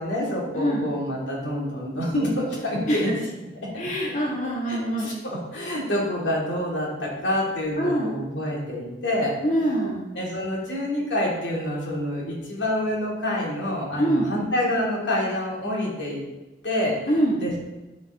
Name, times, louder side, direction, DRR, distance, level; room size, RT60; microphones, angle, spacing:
voice 1, 0.0-3.1 3.6-3.8 4.7-9.7 10.1-16.2 16.6-17.6, left 1 dB, 85° left, -4 dB, 3.1 m, -27 dB
voice 2, 0.5-0.9 2.9-3.0 3.8-5.1 7.8-8.1 9.4-10.0 14.0-14.3 17.1-17.4, right 1 dB, 40° left, -4 dB, 1.3 m, -24 dB
12.0 x 5.1 x 4.0 m, 1.1 s
head